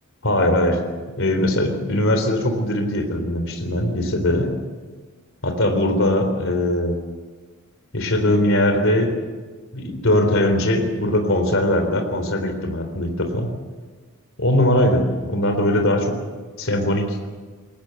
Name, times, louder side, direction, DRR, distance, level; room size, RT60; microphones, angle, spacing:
voice 1, 0.2-0.8 1.2-4.6 5.4-7.0 7.9-9.2 9.7-13.5 14.4-16.2 16.6-17.2, left 1 dB, 60° left, 5 dB, 3.8 m, -20 dB
22.5 x 18.5 x 8.1 m, 1.4 s
head